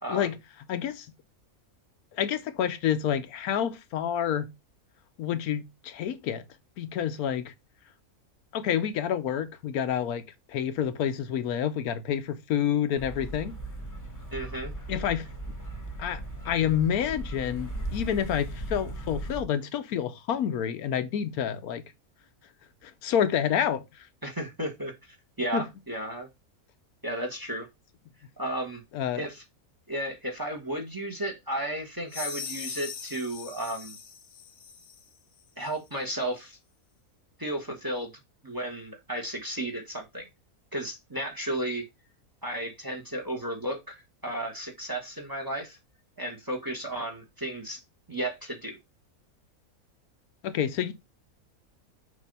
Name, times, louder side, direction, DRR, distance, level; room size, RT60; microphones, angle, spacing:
voice 1, 0.7-1.1 2.1-4.5 5.2-6.4 6.8-7.5 8.5-10.2 10.5-13.5 14.9-15.3 16.0-21.8 22.8-24.1 25.5-25.6 28.9-29.2 50.4-50.9, left 9 dB, 85° left, 1.2 m, -28 dB
sound 1, 13.0-19.4, right 1 dB, 15° left, 1.2 m, -37 dB
voice 2, 14.3-14.7 24.2-24.9 25.4-26.3 27.0-27.7 28.4-28.8 29.1-29.4 29.9-34.0 35.6-36.6 37.4-38.1 38.4-40.3 40.7-41.9 42.4-43.9 44.2-45.8 46.2-47.8 48.1-48.8, right 1 dB, 15° right, 1.1 m, -33 dB
sound 2, 32.1-35.1, left 5 dB, 50° left, 0.8 m, -40 dB
6.6 x 2.8 x 5.2 m
omnidirectional pair, 1.5 m